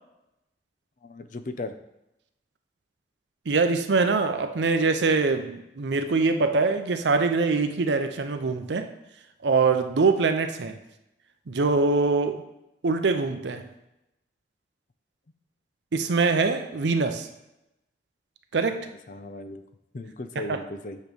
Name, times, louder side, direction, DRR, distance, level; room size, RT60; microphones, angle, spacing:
voice 1, 1.0-1.7 18.9-19.6 19.9-21.0, left 2 dB, 45° left, 10 dB, 0.4 m, -37 dB
voice 2, 3.5-8.9 9.4-10.8 11.5-12.4 12.8-13.6 15.9-17.3 18.5-18.8 20.5-20.6, right 4 dB, 80° right, 7 dB, 0.6 m, -23 dB
8.4 x 3.1 x 5.1 m, 0.89 s
head